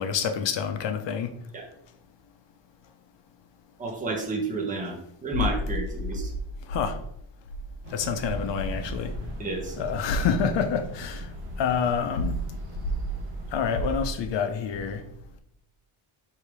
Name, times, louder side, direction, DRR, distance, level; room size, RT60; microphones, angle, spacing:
voice 1, 0.0-1.3 6.7-7.0 7.9-9.1 9.8-11.3 11.6-12.4 13.5-15.0, left 6 dB, 60° left, 8 dB, 0.6 m, -27 dB
voice 2, 3.8-4.9 5.2-6.3 9.4-9.8, right 3 dB, 15° right, -1 dB, 0.9 m, -30 dB
sound 1, 7.8-14.1, right 1 dB, 85° right, 1.0 m, -39 dB
3.4 x 2.8 x 4.6 m, 0.74 s
cardioid pair, 130°, 50 cm